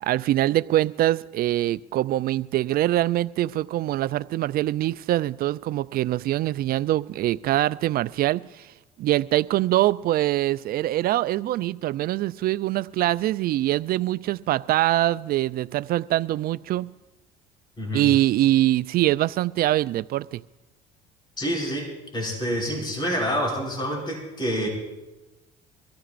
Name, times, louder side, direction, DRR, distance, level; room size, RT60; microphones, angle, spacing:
voice 1, 0.0-8.7 9.0-16.9 17.9-20.4, right 14 dB, 55° right, 0.4 m, -23 dB
voice 2, 21.4-24.7, equal, 25° left, 5.3 m, -27 dB
24.0 x 14.5 x 2.5 m
supercardioid pair, 80°, 19 cm